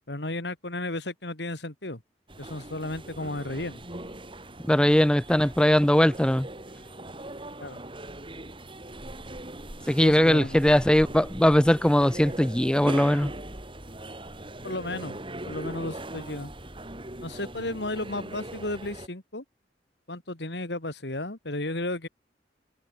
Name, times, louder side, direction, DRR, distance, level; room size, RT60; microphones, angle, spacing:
voice 1, 0.1-2.0 2.4-3.8 7.6-7.8 10.0-10.6 14.6-16.5 17.2-19.4 20.1-22.1, left 2 dB, 70° left, 3.0 m, -34 dB
sound 1, 2.3-19.1, right 1 dB, 30° right, 5.9 m, -40 dB
voice 2, 4.6-6.5 9.9-13.3, left 1 dB, 5° left, 0.4 m, -20 dB
head